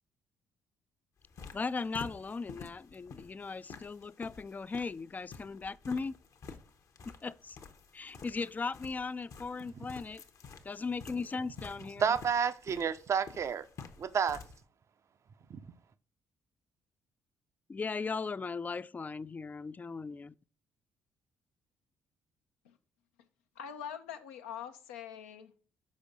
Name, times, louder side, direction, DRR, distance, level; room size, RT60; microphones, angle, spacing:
sound 1, 1.2-14.6, left 5 dB, 50° left, 0.9 m, -51 dB
voice 1, 1.5-6.1 7.2-7.6 7.9-10.2 10.6-12.1 17.7-20.3, left 4 dB, 25° left, 0.3 m, -37 dB
voice 2, 12.0-13.7 14.0-14.4 15.5-15.7, right 7 dB, 45° right, 0.5 m, -30 dB
voice 3, 23.6-25.5, left 8 dB, 80° left, 0.6 m, -44 dB
6.2 x 5.0 x 4.0 m
figure-of-eight pair, 45°, 7 cm